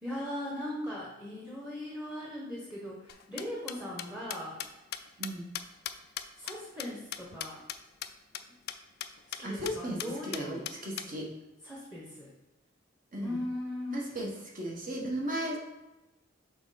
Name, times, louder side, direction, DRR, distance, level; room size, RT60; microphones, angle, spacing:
voice 1, 0.0-4.6 6.3-7.6 9.3-10.6 11.6-12.3 13.2-14.0, left 1 dB, 5° right, -4 dB, 1.0 m, -39 dB
sound 1, 3.1-7.8 8.0-8.1 8.3-8.4 8.7-8.8 9.0-9.4 9.7-9.8 10.0-11.1, left 11 dB, 55° left, 0.4 m, -38 dB
voice 2, 9.4-10.0 10.3-11.3 13.1-13.3 13.9-14.3 14.5-15.6, right 1 dB, 45° right, -2 dB, 1.4 m, -35 dB
6.0 x 4.2 x 4.1 m, 1.0 s
head